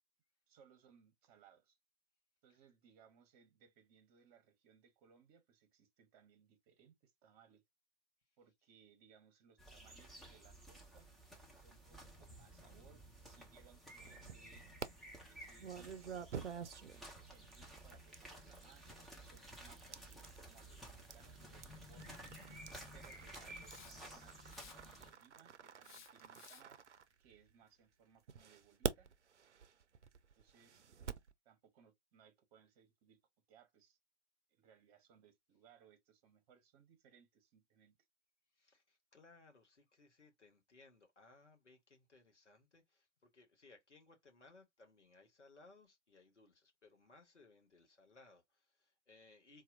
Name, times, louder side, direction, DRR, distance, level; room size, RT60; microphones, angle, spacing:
voice 1, 0.5-1.8 2.4-7.6 8.4-11.1 11.6-14.7 15.3-16.3 16.9-22.3 22.9-26.8 27.2-29.1 30.3-31.0 31.4-33.2 33.5-34.0 34.5-38.0, right 7 dB, 35° right, 1.0 m, -67 dB
sound 1, 9.6-25.1, right 1 dB, ahead, 0.5 m, -55 dB
sound 2, 14.0-14.9 15.6-27.6 28.3-31.3, right 7 dB, 75° right, 0.5 m, -48 dB
Hiss, 23.6-24.1 24.5-25.1 25.8-26.8, left 8 dB, 45° left, 0.5 m, -59 dB
voice 2, 38.6-49.6, left 3 dB, 80° left, 1.2 m, -64 dB
4.2 x 2.4 x 2.5 m
figure-of-eight pair, 110°, 35 cm